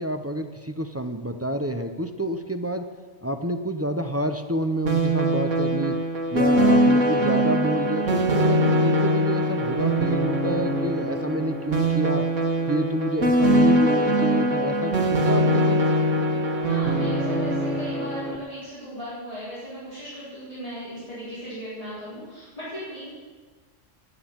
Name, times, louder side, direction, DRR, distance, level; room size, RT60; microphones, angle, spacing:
voice 1, 0.0-2.9 3.2-6.0 6.3-12.2 12.7-15.8, right 1 dB, 20° right, 7 dB, 0.4 m, -28 dB
sound 1, 4.8-18.4, right 1 dB, 70° right, 1.7 m, -22 dB
voice 2, 16.6-23.1, equal, 25° left, -11 dB, 4.4 m, -37 dB
10.0 x 9.7 x 8.7 m, 1.4 s
omnidirectional pair, 1.3 m